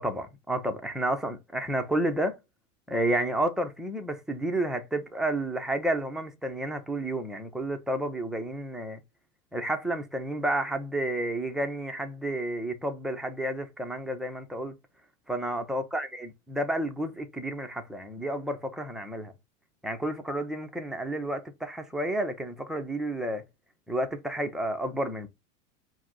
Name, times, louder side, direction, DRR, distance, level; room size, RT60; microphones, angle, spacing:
voice 1, 0.0-2.4 2.9-9.0 9.5-14.7 15.3-19.3 19.8-23.4 23.9-25.3, right 1 dB, ahead, 0.5 m, -31 dB
4.8 x 2.1 x 3.6 m
supercardioid pair, 135°, 39 cm